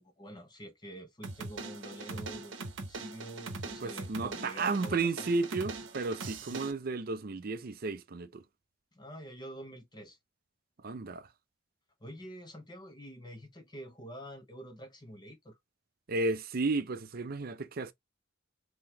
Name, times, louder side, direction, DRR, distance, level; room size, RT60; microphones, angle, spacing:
voice 1, 0.0-5.3 6.5-6.6 8.9-10.2 12.0-15.6, equal, 20° left, 0.8 m, -47 dB
sound 1, 1.2-6.7, right 3 dB, 70° right, 0.9 m, -41 dB
voice 2, 3.8-8.4 10.8-11.3 16.1-17.9, right 3 dB, 50° right, 0.5 m, -33 dB
3.8 x 2.9 x 2.8 m
head